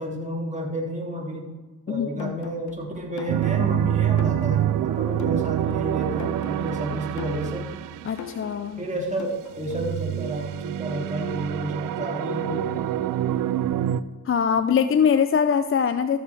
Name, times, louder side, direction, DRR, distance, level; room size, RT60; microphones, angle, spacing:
voice 1, 0.0-1.5 1.9-7.7 8.8-12.7, right 1 dB, 20° right, -2 dB, 2.8 m, -31 dB
voice 2, 1.9-2.3 8.1-8.8 14.3-16.2, left 7 dB, 40° left, 11 dB, 0.5 m, -22 dB
sound 1, 2.2-10.0, left 9 dB, 60° left, 0.9 m, -42 dB
sound 2, 3.3-8.6 9.6-14.0, right 12 dB, 70° right, 0.5 m, -26 dB
14.0 x 6.8 x 3.4 m, 1.2 s
supercardioid pair, 45°, 34 cm